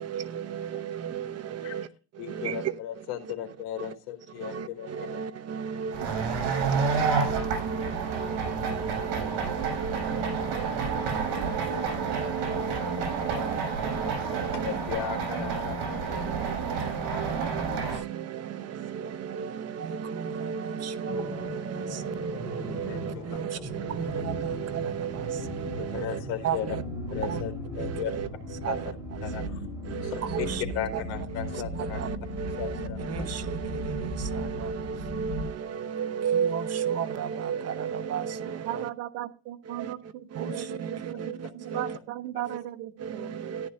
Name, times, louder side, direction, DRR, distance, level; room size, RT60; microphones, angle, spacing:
voice 1, 0.0-1.9 2.1-3.3 3.8-3.9 4.4-14.8 15.9-26.8 27.1-27.4 27.7-29.5 29.8-30.6 30.9-31.0 31.3-38.9 39.6-42.0 42.4-42.6 43.0-43.7, right 7 dB, 30° right, 0.9 m, -34 dB
voice 2, 2.2-5.2 10.8-12.0 12.7-13.1 13.3-13.5 13.9-14.0 14.5-16.0 22.9-23.2 25.8-26.8 27.1-28.1 28.7-28.8 29.2-29.7 30.0-30.5 30.7-32.0 32.6-34.1 34.5-34.6 35.9-36.0 40.5-40.6 41.4-42.0, left 11 dB, 65° left, 4.0 m, -37 dB
sound 1, 5.9-18.0, right 5 dB, 60° right, 6.6 m, -30 dB
sound 2, 21.0-35.5, equal, 5° right, 5.4 m, -36 dB
voice 3, 38.7-43.3, right 14 dB, 75° right, 1.3 m, -37 dB
14.0 x 11.5 x 2.7 m
cardioid pair, 150°, 47 cm